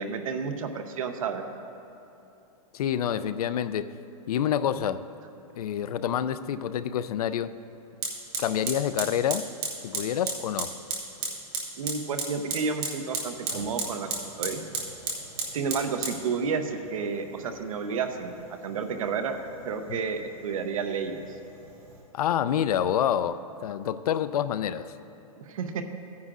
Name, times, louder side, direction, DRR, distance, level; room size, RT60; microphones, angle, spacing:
voice 1, 0.0-1.4 11.8-14.1 14.4-14.6 15.5-18.4 18.6-19.4 19.6-21.2 25.4-25.8, right 5 dB, 65° right, 7 dB, 0.8 m, -31 dB
voice 2, 2.7-3.9 4.3-5.0 5.6-7.5 8.4-9.5 9.8-10.7 19.9-20.0 22.1-24.9, left 9 dB, 75° left, 14 dB, 0.4 m, -27 dB
Fire, 8.0-22.0, right 3 dB, 20° right, 1.0 m, -36 dB
15.0 x 9.5 x 2.5 m, 2.9 s
supercardioid pair, 180°, 19 cm